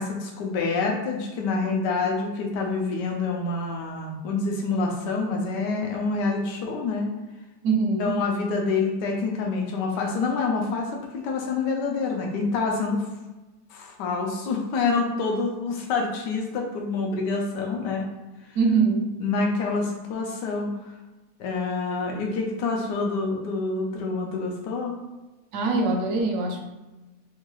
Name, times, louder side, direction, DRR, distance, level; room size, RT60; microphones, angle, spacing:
voice 1, 0.0-7.1 8.0-13.1 13.7-18.1 18.4-18.6 19.2-20.9 21.4-24.9, left 4 dB, 90° left, 0 dB, 1.2 m, -27 dB
voice 2, 7.6-8.2 18.5-19.2 25.5-26.7, right 4 dB, 70° right, 2 dB, 0.8 m, -23 dB
3.6 x 2.3 x 3.0 m, 1.1 s
omnidirectional pair, 1.8 m